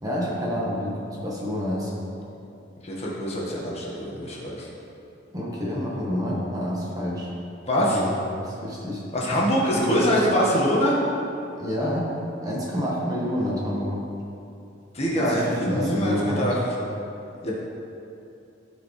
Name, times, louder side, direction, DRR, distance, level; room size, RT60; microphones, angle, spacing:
voice 1, 0.0-1.9 5.3-7.3 7.8-8.1 8.4-9.0 9.7-10.2 11.6-12.1 12.4-14.0 15.2-16.6, equal, 20° right, -5 dB, 1.3 m, -28 dB
voice 2, 2.8-4.7 7.7-8.0 9.1-11.0 14.9-15.4 15.7-16.5 17.4-17.5, equal, 35° left, -4 dB, 1.4 m, -24 dB
14.0 x 4.8 x 3.2 m, 2.7 s
head